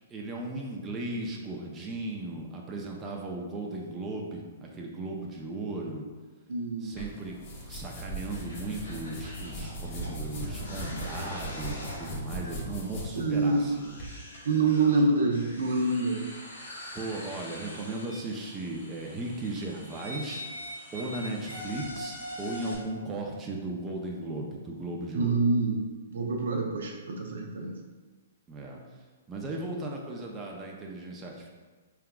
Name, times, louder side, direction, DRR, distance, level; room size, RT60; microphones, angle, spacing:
voice 1, 0.1-6.0 6.8-7.3 7.7-14.0 16.9-20.4 20.9-25.4 28.5-28.8 29.3-31.5, right 2 dB, 20° right, -1 dB, 0.6 m, -36 dB
voice 2, 6.5-6.9 13.2-13.7 14.5-16.2 25.1-25.8 26.1-27.7, right 3 dB, 70° right, 1 dB, 0.7 m, -26 dB
sound 1, 7.0-14.1, right 1 dB, 40° left, 1.0 m, -39 dB
sound 2, 8.2-22.7, left 1 dB, 85° left, 1.3 m, -43 dB
4.6 x 3.6 x 2.3 m, 1.3 s
hypercardioid pair, 120°, 0 cm